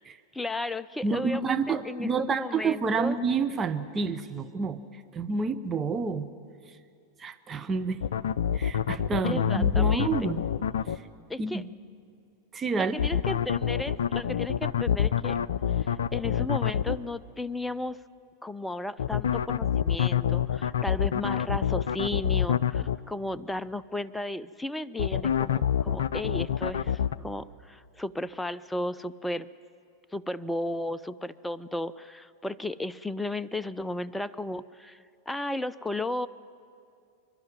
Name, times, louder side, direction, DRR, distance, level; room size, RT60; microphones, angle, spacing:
voice 1, 0.3-3.2 9.2-10.3 11.3-11.6 12.8-15.4 15.7-18.0 18.4-29.5 30.1-36.3, left 1 dB, 5° left, 15 dB, 0.5 m, -34 dB
voice 2, 1.0-6.3 7.2-8.0 8.5-10.5 10.9-11.0 11.4-11.7 12.5-13.0, right 4 dB, 20° right, 9 dB, 0.8 m, -29 dB
sound 1, 8.0-11.0 13.0-17.0 19.0-23.0 25.0-27.2, left 9 dB, 65° left, 0.4 m, -26 dB
27.5 x 12.0 x 9.4 m, 2.4 s
figure-of-eight pair, 90°, 0 cm